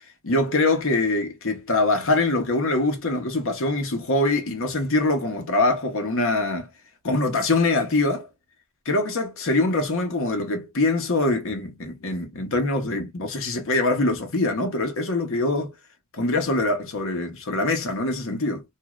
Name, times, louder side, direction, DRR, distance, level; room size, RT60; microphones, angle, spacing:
voice 1, 0.2-6.7 7.0-8.3 8.9-15.7 16.1-18.6, left 2 dB, 65° left, 1.0 m, -23 dB
3.1 x 2.5 x 2.3 m
head